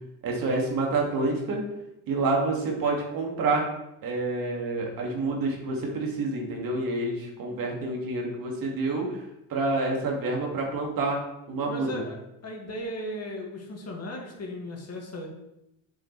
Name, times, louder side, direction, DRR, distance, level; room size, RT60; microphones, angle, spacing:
voice 1, 0.2-1.6 2.1-3.7 4.0-9.2 9.5-11.2 11.5-11.9, right 3 dB, 55° right, 0 dB, 2.3 m, -28 dB
voice 2, 11.6-12.2 12.4-15.3, equal, 40° left, 0 dB, 2.2 m, -36 dB
7.5 x 6.3 x 3.3 m, 0.85 s
supercardioid pair, 80°, 40 cm